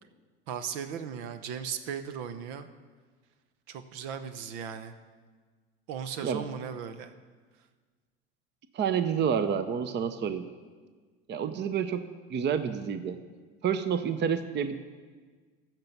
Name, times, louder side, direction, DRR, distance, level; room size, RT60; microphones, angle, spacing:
voice 1, 0.5-2.7 3.7-4.9 5.9-7.1, right 7 dB, 70° right, 10 dB, 0.9 m, -37 dB
voice 2, 8.7-10.5 11.3-12.0 12.3-13.2 13.6-14.8, right 7 dB, 30° right, 11 dB, 0.7 m, -29 dB
14.5 x 6.0 x 5.4 m, 1.5 s
hypercardioid pair, 90°, 34 cm